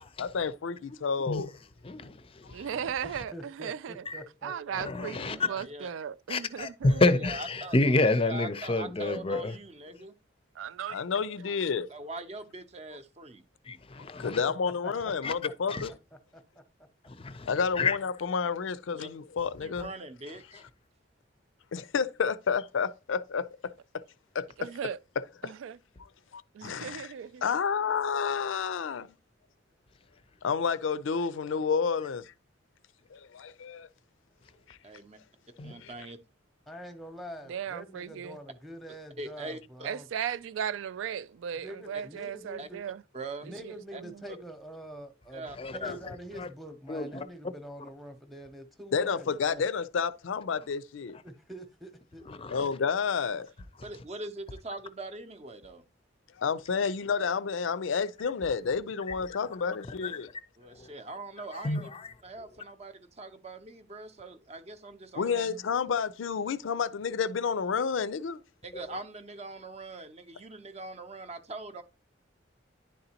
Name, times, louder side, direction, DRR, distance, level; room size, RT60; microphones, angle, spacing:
voice 1, 0.2-1.5 10.9-11.9 14.2-15.9 17.5-19.9 21.7-23.7 24.3-24.7 25.2-25.5 26.3-27.1 27.4-29.1 30.4-32.3 33.1-33.9 34.7-34.8 35.8-35.9 48.9-51.2 52.5-53.5 56.4-60.3 65.2-68.4, left 6 dB, 80° left, 0.4 m, -30 dB
voice 2, 1.8-2.6 4.1-4.2 4.8-5.5 6.3-9.5 13.7-14.4 15.2-15.3 15.7-15.9 17.2-17.5 17.8-18.0 35.6-35.7 45.6-46.0 46.3-46.5 46.9-47.2 52.3-52.7 60.0-60.1 60.8-60.9 61.5-62.1, left 2 dB, 30° left, 0.5 m, -29 dB
voice 3, 2.5-4.1 4.4-7.0 10.6-11.0 24.6-25.0 25.4-25.8 26.5-27.4 37.5-38.4 39.8-43.0 43.4-44.2, right 8 dB, 80° right, 0.3 m, -37 dB
voice 4, 3.0-4.8 14.2-14.3 14.8-14.9 16.5-16.6 36.7-40.1 41.6-42.8 43.4-45.4 45.7-49.6 51.2-52.2 56.8-56.9, right 1 dB, ahead, 0.8 m, -45 dB
voice 5, 5.5-5.9 6.9-7.8 8.1-10.1 11.9-13.4 18.9-19.1 19.6-20.6 34.8-35.2 35.6-36.2 39.2-39.9 41.9-42.0 42.6-42.7 43.1-43.5 43.9-44.0 45.3-46.0 53.8-55.8 60.6-61.9 62.2-65.5 68.6-71.8, right 2 dB, 35° right, 0.6 m, -42 dB
10.5 x 3.9 x 2.8 m
head